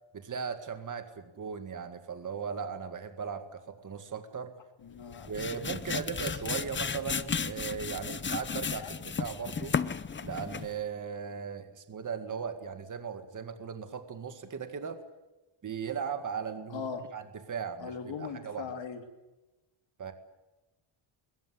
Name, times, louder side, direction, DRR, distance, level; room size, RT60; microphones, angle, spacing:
voice 1, 0.1-4.5 5.3-9.8 10.2-15.0 15.6-16.8 17.1-18.7 20.0-20.1, right 6 dB, 35° right, 8 dB, 2.1 m, -38 dB
voice 2, 4.8-5.3 5.9-6.0 8.8-8.9 16.7-17.0 17.8-19.0, left 6 dB, 60° left, 5 dB, 3.3 m, -39 dB
sound 1, 5.0-10.8, left 6 dB, 25° left, 0.7 m, -34 dB
21.5 x 21.0 x 8.0 m, 1.1 s
wide cardioid pair, 160°, 50 cm